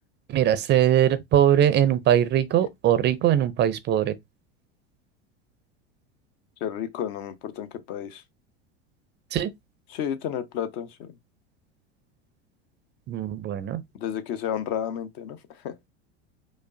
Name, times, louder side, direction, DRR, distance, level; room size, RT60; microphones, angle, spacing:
voice 1, 0.3-4.2 9.3-9.5 13.1-13.8, right 11 dB, 30° right, 0.4 m, -21 dB
voice 2, 6.6-8.2 9.9-11.1 13.9-15.8, left 9 dB, 55° left, 0.8 m, -32 dB
5.0 x 2.0 x 2.6 m
hypercardioid pair, 90°, 34 cm